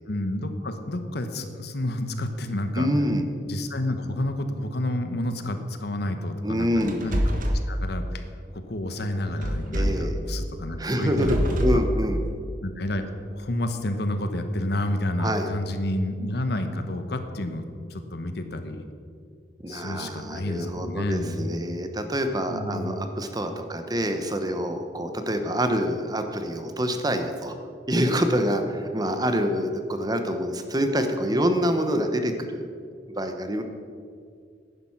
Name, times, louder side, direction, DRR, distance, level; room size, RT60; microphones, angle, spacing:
voice 1, 0.1-2.9 3.5-8.2 8.5-11.3 11.7-11.8 12.6-17.6 17.9-18.8 19.7-21.5 22.5-23.0, left 1 dB, 65° left, 8 dB, 1.0 m, -30 dB
voice 2, 2.7-3.3 6.4-7.0 9.7-10.1 10.8-12.2 15.2-15.5 19.6-27.6 27.9-32.6 33.1-33.6, equal, 20° right, 6 dB, 0.9 m, -26 dB
sound 1, 6.8-7.6 9.4-10.1 11.0-11.8, equal, 50° right, 1.4 m, -25 dB
11.0 x 10.0 x 5.8 m, 2.2 s
head